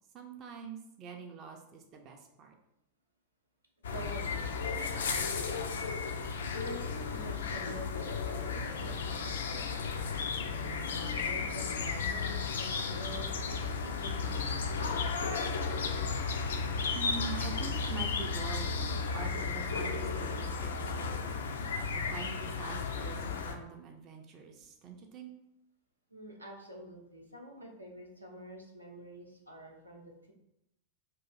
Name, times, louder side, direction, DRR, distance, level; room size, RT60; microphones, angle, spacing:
voice 1, 0.1-2.5 16.9-25.3, right 5 dB, 35° right, 2 dB, 0.4 m, -45 dB
sound 1, 3.8-23.5, left 5 dB, 65° left, 0.3 m, -34 dB
voice 2, 3.9-5.9 6.2-10.3 10.9-15.0 26.1-30.3, right 1 dB, 85° right, -1 dB, 0.6 m, -47 dB
2.7 x 2.4 x 4.0 m, 0.83 s
figure-of-eight pair, 90°, 0 cm